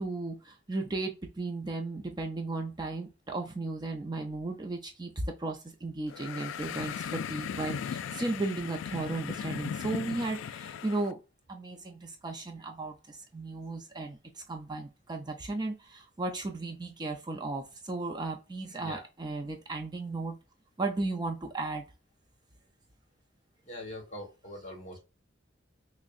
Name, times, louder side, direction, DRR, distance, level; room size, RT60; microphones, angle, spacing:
voice 1, 0.0-5.1 5.4-11.2 11.5-14.2 14.5-20.4 20.8-21.9, right 2 dB, 20° right, 3 dB, 0.4 m, -35 dB
sound 1, 6.1-11.1, left 8 dB, 80° left, 0.3 m, -37 dB
voice 2, 23.6-25.0, left 1 dB, 35° left, 1 dB, 1.4 m, -42 dB
6.2 x 2.1 x 2.5 m, 0.28 s
head